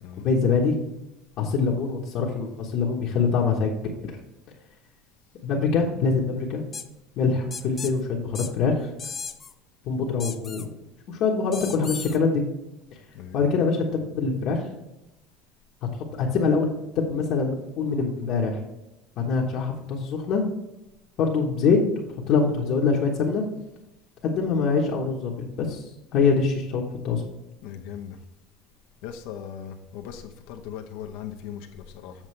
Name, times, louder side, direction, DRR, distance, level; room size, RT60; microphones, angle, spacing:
voice 1, 0.2-0.8 1.4-3.7 5.4-6.6 7.2-8.9 9.9-10.6 11.1-12.4 13.3-14.6 16.2-18.6 19.2-20.4 21.2-21.8 22.3-23.4 24.2-25.8 26.1-27.2, left 5 dB, 45° left, 1.2 m, -24 dB
sound 1, 6.7-6.9 7.5-7.9 8.3-8.5 9.0-9.5 10.2-10.7 11.5-12.2, left 6 dB, 20° left, 0.4 m, -36 dB
voice 2, 27.6-28.2 29.0-32.1, left 9 dB, 65° left, 0.8 m, -38 dB
7.4 x 7.2 x 3.3 m
cardioid pair, 170°, 0 cm